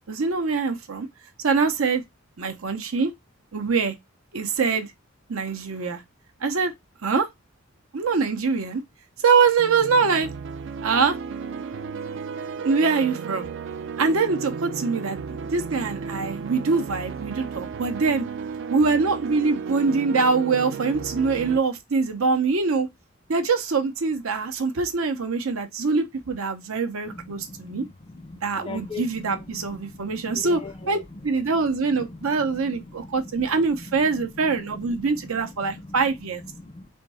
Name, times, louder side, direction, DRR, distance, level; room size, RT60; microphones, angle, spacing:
voice 1, 0.1-1.1 1.4-2.0 2.4-3.1 3.5-3.9 4.3-4.9 5.3-6.0 6.4-6.7 7.0-7.3 7.9-8.8 9.2-10.3 10.8-11.2 12.6-13.5 14.0-18.2 18.7-22.9 23.3-27.8 28.4-30.6 30.9-31.0 31.2-36.4, right 4 dB, 80° right, 0.7 m, -23 dB
Absolute Synth, 9.6-21.6, right 6 dB, 55° right, 0.3 m, -34 dB
voice 2, 27.1-36.0 36.4-36.9, left 3 dB, 25° left, 0.4 m, -41 dB
3.6 x 2.3 x 4.1 m
head